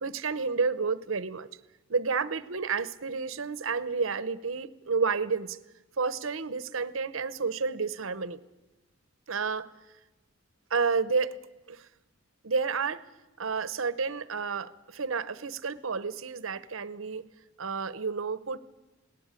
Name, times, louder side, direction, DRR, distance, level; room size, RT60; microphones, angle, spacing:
voice 1, 0.0-1.5 1.9-5.6 6.0-8.4 9.3-9.7 10.7-11.3 11.7-11.9 12.4-13.0 13.4-17.2 17.6-18.6, right 5 dB, 70° right, 16 dB, 0.9 m, -30 dB
20.5 x 18.0 x 9.0 m, 1.1 s
head